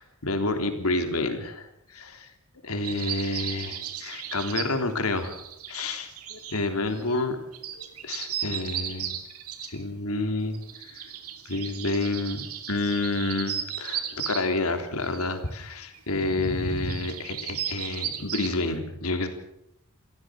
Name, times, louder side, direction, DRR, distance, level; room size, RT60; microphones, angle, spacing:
voice 1, 0.2-2.3 2.6-5.4 5.7-7.4 7.7-9.1 9.6-11.1 11.4-19.3, left 2 dB, 80° left, 6 dB, 3.4 m, -29 dB
sound 1, 2.8-4.9 5.2-6.6 6.9-7.2 7.5-9.8 10.5-14.4 15.0-15.5 15.9-16.0 16.4-18.7, right 9 dB, 90° right, 2.8 m, -35 dB
28.5 x 15.5 x 6.4 m, 0.82 s
head